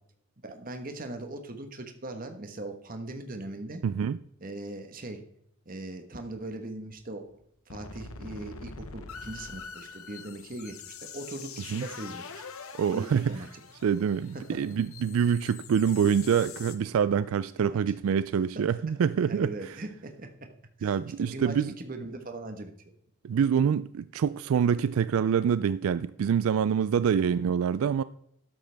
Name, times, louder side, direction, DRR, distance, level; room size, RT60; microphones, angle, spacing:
voice 1, 0.4-3.8 4.4-5.2 5.6-7.4 7.7-12.4 12.9-13.5 14.3-14.7 17.6-17.8 19.3-20.3 20.8-22.9, right 2 dB, 40° right, 1.3 m, -40 dB
voice 2, 3.8-4.2 11.7-11.8 12.8-13.4 13.8-19.7 20.8-21.7 23.2-28.0, right 7 dB, 80° right, 0.3 m, -26 dB
sound 1, 7.0-7.1 7.4-7.5 7.7-16.8, left 5 dB, 85° left, 1.1 m, -44 dB
13.0 x 10.5 x 3.5 m
head